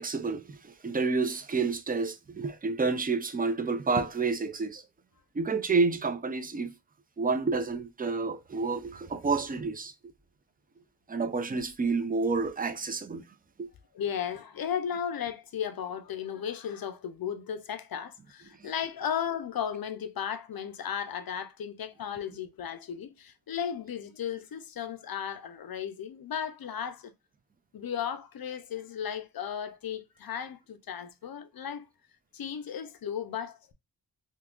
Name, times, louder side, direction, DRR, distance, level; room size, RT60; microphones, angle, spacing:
voice 1, 0.0-4.8 5.3-6.7 7.2-9.9 11.1-13.2 13.6-13.7 18.6-18.7, right 4 dB, 20° right, 0.4 m, -29 dB
voice 2, 13.9-27.1 27.7-31.9 32.3-33.7, left 8 dB, 55° left, 0.5 m, -35 dB
3.6 x 2.7 x 2.3 m
wide cardioid pair, 140°, 42 cm